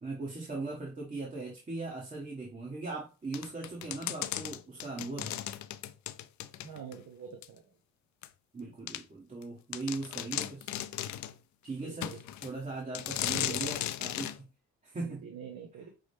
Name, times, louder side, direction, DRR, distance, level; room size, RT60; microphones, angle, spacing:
voice 1, 0.0-5.4 8.5-10.7 11.6-14.5 14.8-15.2, right 3 dB, 25° right, 1.3 m, -39 dB
sound 1, 3.3-7.0 7.4-7.5 8.2-8.3 8.9-9.0 9.4-9.5 9.7-11.4 12.0-12.5 12.9-14.4, left 13 dB, 70° left, 0.5 m, -36 dB
voice 2, 6.6-7.6 11.8-12.2 13.3-13.9 15.0-15.9, right 7 dB, 65° right, 1.0 m, -45 dB
6.1 x 2.1 x 3.3 m
cardioid pair, 90°, 30 cm